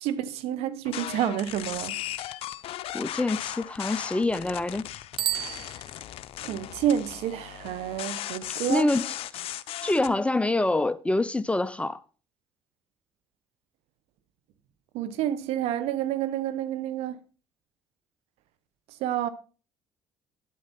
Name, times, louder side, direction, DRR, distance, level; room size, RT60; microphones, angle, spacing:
voice 1, 0.0-2.0 6.4-8.9 14.9-17.2 19.0-19.3, right 11 dB, 80° right, 1.0 m, -29 dB
sound 1, 0.8-10.1, left 13 dB, 65° left, 0.6 m, -37 dB
voice 2, 2.9-4.9 8.7-9.2 9.8-12.0, left 2 dB, 10° left, 0.6 m, -26 dB
Bicycle bell, 5.1-6.5, right 13 dB, 55° right, 0.5 m, -32 dB
9.3 x 8.4 x 4.3 m
supercardioid pair, 80°, 10 cm